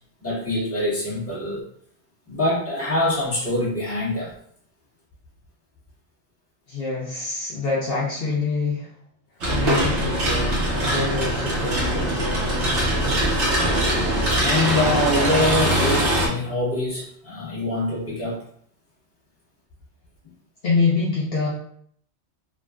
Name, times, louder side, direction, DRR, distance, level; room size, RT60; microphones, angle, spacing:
voice 1, 0.2-1.6 2.3-4.3 14.3-18.4, left 1 dB, 15° left, -9 dB, 1.2 m, -24 dB
voice 2, 6.7-8.9 9.5-13.2 20.6-21.5, left 4 dB, 60° left, -6 dB, 0.9 m, -26 dB
sound 1, 9.4-16.3, right 1 dB, 75° right, 1.1 m, -22 dB
3.5 x 2.3 x 2.4 m, 0.63 s
omnidirectional pair, 1.2 m